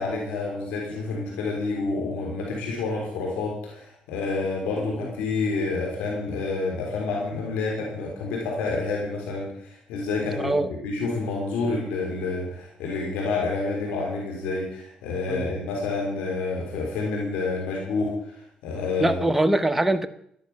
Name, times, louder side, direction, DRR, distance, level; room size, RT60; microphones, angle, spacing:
voice 1, 0.0-19.2, left 3 dB, 90° left, -1 dB, 3.8 m, -28 dB
voice 2, 19.0-20.1, right 1 dB, 5° right, 8 dB, 1.1 m, -22 dB
12.5 x 11.5 x 5.9 m, 0.71 s
cardioid pair, 80°, 2 cm